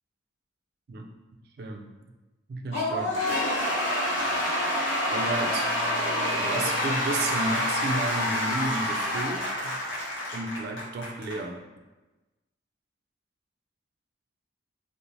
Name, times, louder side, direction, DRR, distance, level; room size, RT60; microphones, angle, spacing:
voice 1, 1.6-1.9 2.5-3.2 5.1-5.7 6.4-9.8 10.3-11.6, right 2 dB, 55° right, 3 dB, 0.3 m, -32 dB
Cheering / Applause / Crowd, 2.7-11.4, left 1 dB, 85° left, 0.7 m, -27 dB
Bowed string instrument, 5.1-9.0, equal, 20° left, 0.6 m, -45 dB
2.5 x 2.0 x 3.0 m, 1.1 s
head